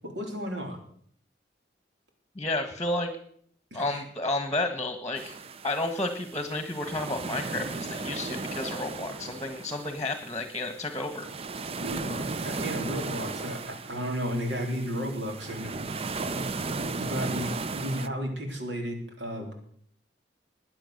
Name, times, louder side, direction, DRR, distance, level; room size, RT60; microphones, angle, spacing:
voice 1, 0.0-0.8 3.7-4.0 11.8-15.7 16.8-19.5, equal, 70° right, 3 dB, 3.8 m, -33 dB
voice 2, 2.3-3.1 3.7-5.3 5.6-11.3, left 2 dB, 20° left, 7 dB, 1.4 m, -31 dB
sound 1, 5.2-18.1, right 3 dB, 35° right, 0.6 m, -36 dB
21.0 x 9.2 x 6.6 m, 0.63 s
head